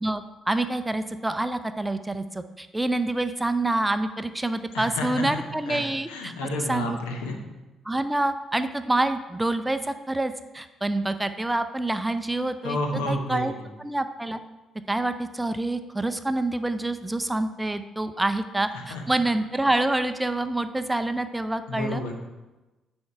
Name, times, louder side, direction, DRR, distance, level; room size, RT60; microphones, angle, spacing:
voice 1, 0.0-6.3 6.7-7.0 7.9-12.8 13.1-13.5 13.8-14.4 14.9-22.0, right 2 dB, 10° right, 10 dB, 0.5 m, -27 dB
voice 2, 4.7-5.8 6.1-7.4 12.6-13.6 18.7-19.0 21.7-22.1, left 1 dB, 70° left, 3 dB, 1.1 m, -31 dB
9.4 x 4.4 x 4.6 m, 1.1 s
figure-of-eight pair, 45°, 0 cm